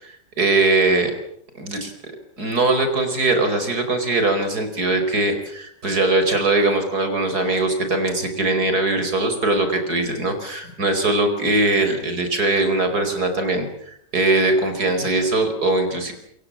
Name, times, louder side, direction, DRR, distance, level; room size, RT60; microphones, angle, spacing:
voice 1, 0.0-1.1 1.6-2.1 2.4-16.1, right 2 dB, 60° right, 7 dB, 5.4 m, -21 dB
27.5 x 23.5 x 7.5 m, 0.70 s
omnidirectional pair, 1.9 m